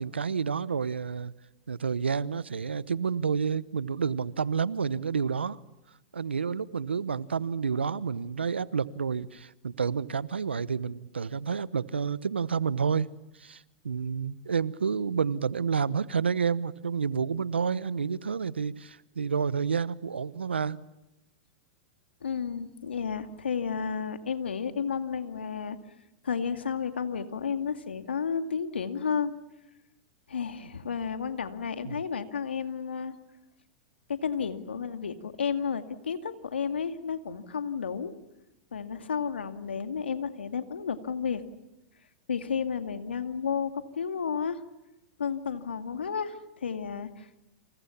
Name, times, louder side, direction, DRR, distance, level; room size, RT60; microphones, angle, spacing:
voice 1, 0.0-1.3 1.7-5.6 6.1-13.1 13.4-20.8 30.6-30.7 31.8-32.0, right 6 dB, 90° right, 19 dB, 1.0 m, -29 dB
voice 2, 22.2-25.8 26.2-29.3 30.3-33.1 34.1-38.1 38.7-41.4 42.3-44.6 45.2-47.5, left 6 dB, 85° left, 8 dB, 2.2 m, -32 dB
29.5 x 27.0 x 7.2 m, 0.96 s
hypercardioid pair, 105°, 6 cm